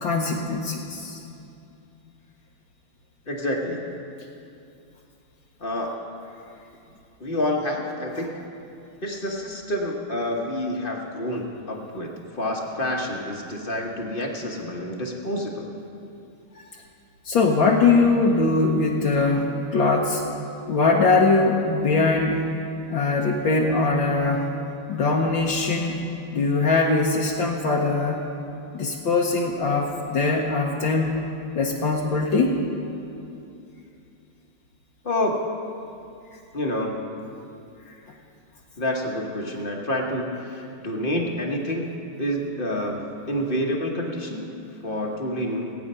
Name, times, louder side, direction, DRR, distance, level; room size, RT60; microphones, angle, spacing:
voice 1, 0.0-1.2 17.2-20.2 20.7-22.5 22.9-24.5 24.9-26.0 26.3-28.3 28.7-31.2 31.5-32.6 37.9-38.0, left 3 dB, 70° left, -2 dB, 1.7 m, -21 dB
voice 2, 3.3-3.8 5.6-6.1 7.2-8.3 9.0-15.7 35.0-35.4 36.5-37.0 38.8-41.9 42.2-44.5 44.8-45.7, left 1 dB, 30° left, 0 dB, 1.2 m, -28 dB
19.5 x 8.9 x 5.5 m, 2.6 s
omnidirectional pair, 2.3 m